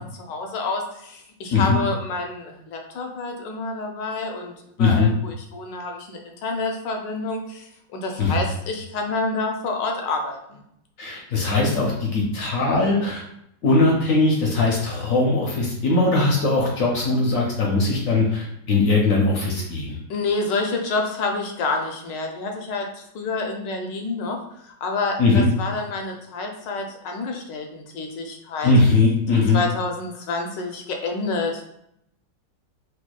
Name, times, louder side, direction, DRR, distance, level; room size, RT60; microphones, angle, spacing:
voice 1, 0.0-4.5 4.8-10.6 20.1-28.7 29.3-31.7, left 3 dB, 80° left, 2 dB, 1.3 m, -28 dB
voice 2, 4.8-5.1 8.2-8.4 11.0-13.2 13.6-20.0 25.2-25.5 28.6-29.6, left 3 dB, 65° left, -2 dB, 0.9 m, -20 dB
4.2 x 2.3 x 2.3 m, 0.75 s
omnidirectional pair, 1.9 m